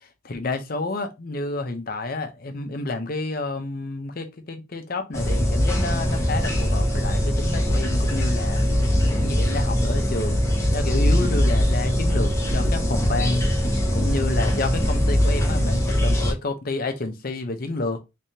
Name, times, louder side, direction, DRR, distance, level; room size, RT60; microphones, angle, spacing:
voice 1, 0.2-8.6 9.1-10.4 10.7-18.0, left 2 dB, 45° left, 0.6 m, -30 dB
sound 1, 5.1-16.3, equal, 15° left, 0.8 m, -21 dB
3.4 x 3.3 x 2.8 m
head